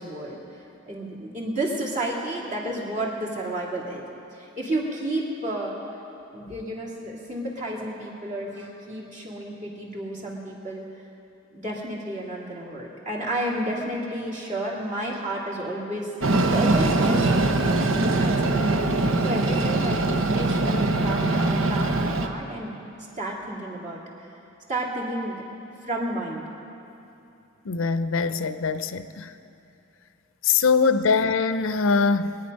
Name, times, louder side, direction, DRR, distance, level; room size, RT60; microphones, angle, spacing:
voice 1, 0.0-4.0 4.3-5.8 6.3-10.8 11.5-16.1 16.4-22.8 23.2-24.3 24.7-25.4 25.8-26.4, right 1 dB, 35° right, -3 dB, 2.4 m, -31 dB
Train, 16.2-22.3, right 2 dB, 80° right, 0.9 m, -22 dB
voice 2, 27.6-29.3 30.4-32.4, left 5 dB, 80° left, 11 dB, 0.6 m, -22 dB
23.0 x 9.3 x 5.4 m, 2.8 s
head